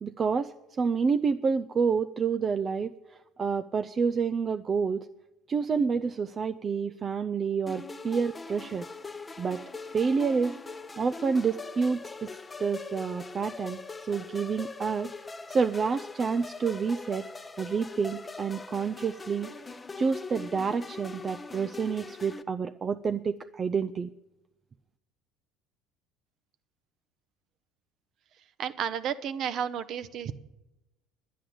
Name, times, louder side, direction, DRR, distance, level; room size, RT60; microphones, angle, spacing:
voice 1, 0.0-5.1 5.5-8.9 9.4-9.6 9.9-10.6 11.0-15.1 15.5-17.3 17.6-19.5 20.0-24.1, right 5 dB, 35° right, 9 dB, 0.4 m, -29 dB
sound 1, 7.7-22.4, left 3 dB, 20° left, 0.8 m, -42 dB
voice 2, 28.6-30.3, right 8 dB, 55° right, 13 dB, 0.8 m, -32 dB
10.0 x 9.9 x 7.8 m, 0.97 s
hypercardioid pair, 70°, 0 cm